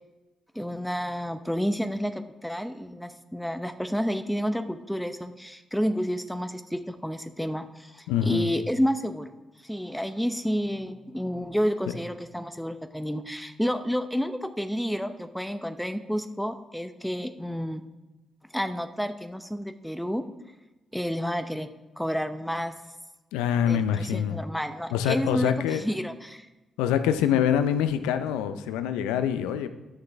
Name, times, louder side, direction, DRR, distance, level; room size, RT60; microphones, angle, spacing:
voice 1, 0.5-9.3 9.6-17.8 18.5-20.2 20.9-21.7 22.0-22.7 23.7-26.5, equal, ahead, 8 dB, 0.8 m, -30 dB
voice 2, 8.1-8.5 23.3-24.4 24.9-25.8 26.8-29.7, left 9 dB, 80° left, 11 dB, 0.5 m, -25 dB
11.0 x 6.6 x 3.5 m, 1.1 s
hypercardioid pair, 45°, 0 cm